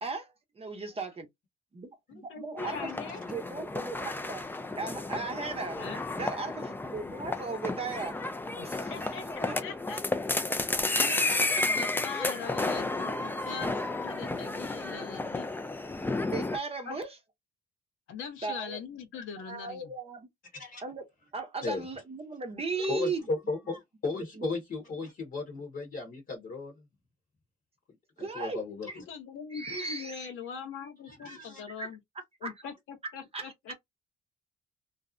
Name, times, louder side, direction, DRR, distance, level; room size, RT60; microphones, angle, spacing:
voice 1, 0.6-1.1 1.8-4.5 4.7-5.8 6.2-8.2 8.6-9.1 9.5-9.6 11.2-11.6 16.3-17.2 18.4-18.8 19.4-20.3 20.8-21.0 21.3-23.2 24.4-24.5 28.2-28.6 28.9-29.0 29.5-30.3 31.2-31.5 31.8-31.9 32.4-32.5 33.3-33.5, right 3 dB, 30° right, 0.7 m, -36 dB
voice 2, 2.1-3.2 5.8-6.0 8.6-10.1 10.4-10.6 10.9-15.5 16.9-17.0 18.1-19.9 28.9-32.0 32.4-33.7, left 6 dB, 80° left, 0.8 m, -41 dB
sound 1, 2.6-16.6, left 2 dB, 10° left, 0.4 m, -32 dB
voice 3, 20.5-20.8 21.6-21.8 22.8-26.8 28.2-29.0 31.0-31.6, left 3 dB, 50° left, 1.0 m, -36 dB
2.5 x 2.0 x 2.4 m
cardioid pair, 90°, 20 cm